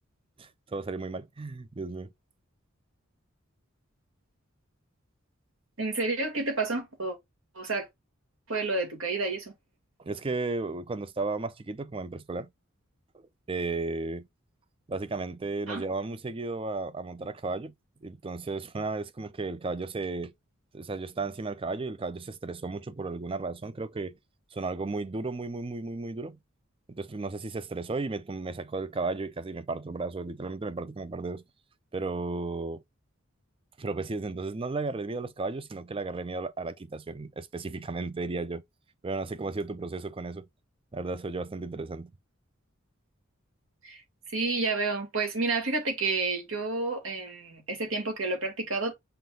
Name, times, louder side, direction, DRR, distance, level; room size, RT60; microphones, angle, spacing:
voice 1, 0.4-2.1 10.0-12.5 13.1-14.3 14.9-17.7 18.0-20.3 20.7-24.2 24.5-26.4 26.9-31.4 31.9-32.8 33.8-38.6 39.0-40.5 40.9-42.1, right 3 dB, 25° right, 0.5 m, -34 dB
voice 2, 5.8-7.2 7.6-7.9 8.5-9.5 15.7-15.8 43.8-44.0 44.3-48.9, right 3 dB, 80° right, 2.0 m, -30 dB
5.9 x 2.4 x 3.7 m
head